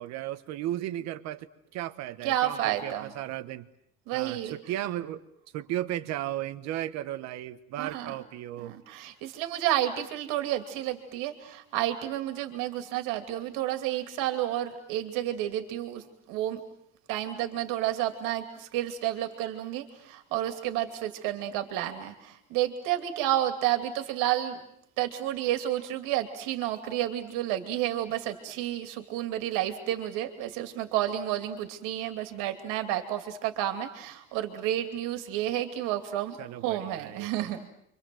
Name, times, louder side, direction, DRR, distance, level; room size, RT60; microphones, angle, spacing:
voice 1, 0.0-1.5 1.7-3.7 4.1-5.2 5.5-8.8 36.4-37.5, right 13 dB, 50° right, 11 dB, 1.3 m, -35 dB
voice 2, 2.2-3.1 4.1-4.6 7.8-8.1 8.6-16.6 17.1-24.6 25.0-36.4 36.6-37.7, right 12 dB, 70° right, 7 dB, 2.7 m, -31 dB
30.0 x 25.0 x 7.8 m, 0.74 s
cardioid pair, 180°, 33 cm